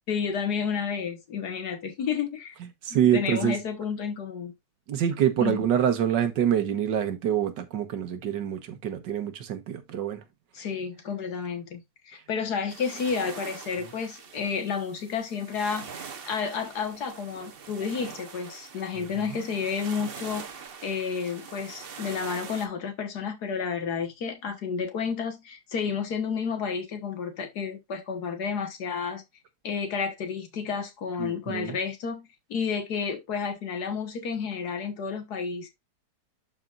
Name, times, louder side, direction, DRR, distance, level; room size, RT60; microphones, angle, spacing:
voice 1, 0.1-2.6 2.9-4.5 5.4-5.6 10.6-20.4 20.8-29.2 29.6-35.7, left 6 dB, 65° left, 1.7 m, -31 dB
voice 2, 2.8-3.6 4.9-10.2 10.6-10.7 19.0-19.4 31.2-31.8, right 9 dB, 80° right, 1.7 m, -26 dB
sound 1, 12.7-22.7, right 6 dB, 45° right, 0.9 m, -43 dB
12.0 x 4.4 x 2.4 m
omnidirectional pair, 1.9 m